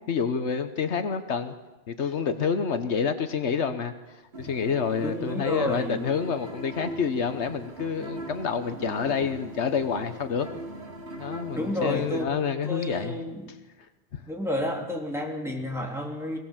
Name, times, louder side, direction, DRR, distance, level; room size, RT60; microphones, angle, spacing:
voice 1, 0.1-1.5 1.9-10.5 11.2-13.2 14.1-14.2, left 6 dB, 80° left, 9 dB, 1.4 m, -28 dB
sound 1, 4.3-12.2, right 2 dB, 75° right, 2.9 m, -40 dB
voice 2, 5.0-6.0 11.5-12.3 12.6-13.5 14.3-16.4, left 1 dB, ahead, 0 dB, 3.2 m, -31 dB
23.0 x 17.5 x 7.3 m, 1.1 s
omnidirectional pair, 1.1 m